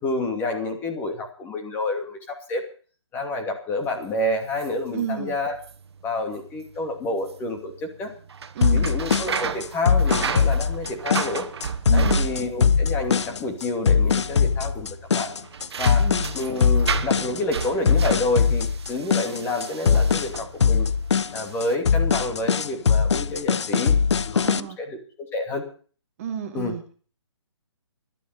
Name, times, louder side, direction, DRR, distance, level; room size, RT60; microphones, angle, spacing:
voice 1, 0.0-2.6 3.1-5.6 6.0-8.1 8.7-11.5 11.9-15.3 15.8-16.1 16.3-20.9 21.3-24.0 24.2-25.6 26.5-26.8, left 2 dB, 15° left, 4 dB, 2.5 m, -29 dB
sound 1, 3.8-20.8 21.4-21.7, right 6 dB, 60° right, 1.5 m, -33 dB
voice 2, 4.9-5.4 8.5-8.9 11.9-12.3 16.0-16.4 24.4-24.8 26.2-26.8, right 9 dB, 30° right, 6 dB, 1.7 m, -30 dB
sound 2, 8.6-24.6, left 6 dB, 70° left, 0.9 m, -21 dB
16.5 x 12.5 x 5.7 m, 0.41 s
hypercardioid pair, 160°, 15 cm